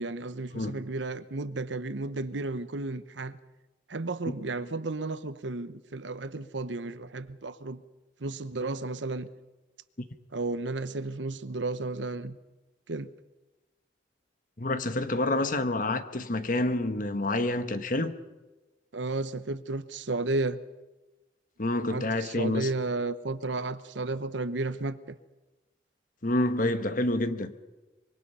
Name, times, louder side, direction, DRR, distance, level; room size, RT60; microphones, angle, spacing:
voice 1, 0.0-3.4 3.9-7.8 8.2-9.3 10.3-12.4 12.9-13.1 18.9-20.6 21.9-25.2, right 2 dB, 85° right, 1.0 m, -33 dB
voice 2, 14.6-18.1 21.6-22.7 26.2-27.5, left 2 dB, 45° left, 1.3 m, -28 dB
25.0 x 23.0 x 5.6 m
head